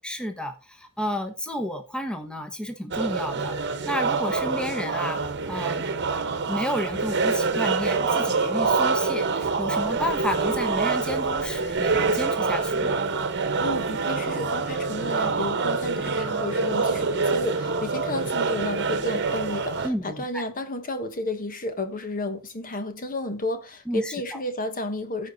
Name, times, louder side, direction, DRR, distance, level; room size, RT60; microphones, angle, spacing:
voice 1, 0.0-3.6 3.8-5.8 6.5-13.0 19.8-20.4 23.9-24.4, equal, 5° left, 1.2 m, -31 dB
sound 1, 2.9-19.9, right 4 dB, 50° right, 1.2 m, -26 dB
voice 2, 13.6-25.3, left 2 dB, 40° left, 1.3 m, -32 dB
15.0 x 5.4 x 4.1 m
head